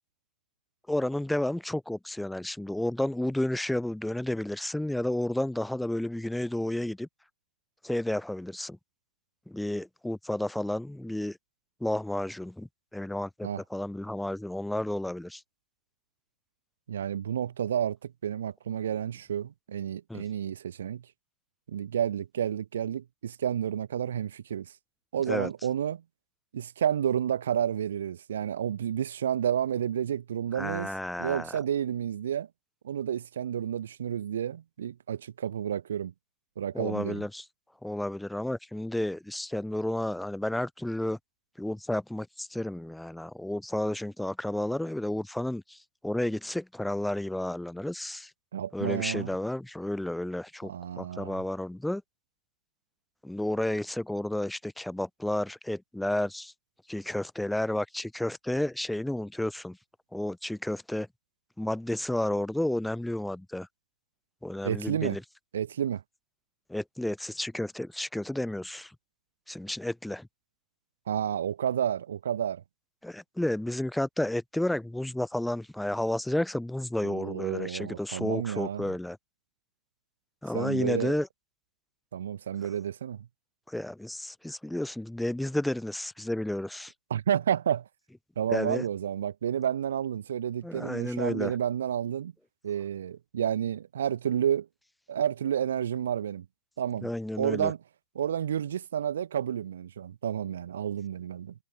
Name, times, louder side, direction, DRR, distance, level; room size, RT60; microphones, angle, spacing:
voice 1, 0.9-7.1 7.8-8.8 9.5-11.4 11.8-15.4 20.1-20.2 25.3-25.5 30.5-31.6 36.7-37.4 37.8-41.2 41.6-48.3 48.7-52.0 53.2-56.5 56.9-59.8 60.1-61.1 61.6-63.7 64.4-65.2 66.7-68.9 69.5-70.3 73.0-79.2 80.4-81.3 83.7-86.9 88.5-88.8 90.6-91.5 97.0-97.7, left 1 dB, ahead, 1.4 m, -31 dB
voice 2, 16.9-21.0 21.7-24.7 25.1-26.0 26.5-30.9 31.2-32.5 32.8-36.1 36.6-37.2 48.5-49.3 50.6-51.4 64.6-65.2 65.5-66.0 71.1-72.6 77.0-78.9 80.5-81.1 82.1-83.3 87.1-87.8 88.4-92.3 92.6-94.7 95.1-96.4 96.8-97.1 97.4-97.8 98.1-101.5, right 9 dB, 80° right, 1.0 m, -30 dB
hypercardioid pair, 155°, 0 cm